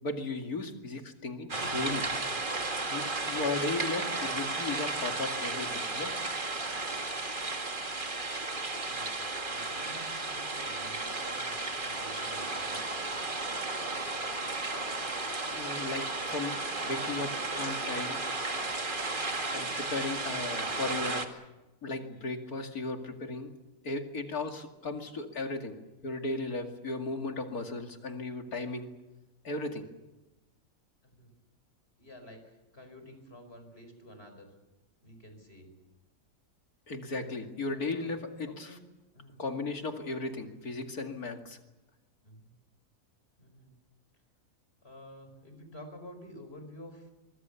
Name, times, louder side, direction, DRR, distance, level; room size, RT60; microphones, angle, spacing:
voice 1, 0.0-2.1 2.9-6.1 15.5-18.2 19.5-21.5 21.8-23.5 23.8-25.7 26.0-28.9 29.4-29.9 36.9-38.7 39.4-41.6, left 3 dB, 70° left, 4 dB, 2.8 m, -36 dB
sound 1, 1.5-21.3, right 2 dB, 35° right, 2.2 m, -34 dB
voice 2, 8.9-12.9 31.0-31.3 32.0-34.5 35.0-35.7 37.7-38.1 38.4-38.8 39.1-39.4 42.2-42.5 43.4-43.7 44.8-47.1, equal, 40° left, 7 dB, 5.5 m, -50 dB
24.5 x 23.5 x 7.0 m, 1.0 s
omnidirectional pair, 1.6 m